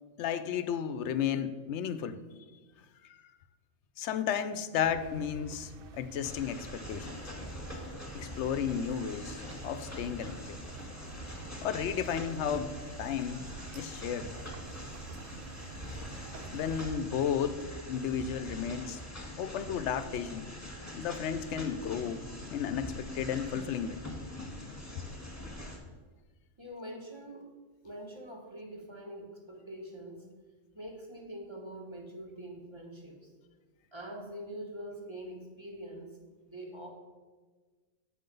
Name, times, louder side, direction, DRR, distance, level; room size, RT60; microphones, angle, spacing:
voice 1, 0.2-2.2 4.0-7.2 8.1-10.6 11.6-13.4 13.7-14.3 16.5-19.0 19.4-20.5 20.9-22.2 22.5-24.0, left 8 dB, 70° left, 12 dB, 0.8 m, -33 dB
sound 1, 4.8-16.9, right 5 dB, 60° right, 0.6 m, -49 dB
sound 2, 6.2-25.8, left 1 dB, 15° left, 1.5 m, -43 dB
voice 2, 26.6-27.5 27.8-30.2 30.7-33.3 33.9-36.2 36.5-36.9, right 1 dB, 25° right, 0 dB, 1.4 m, -44 dB
8.3 x 5.7 x 5.3 m, 1.3 s
omnidirectional pair, 1.3 m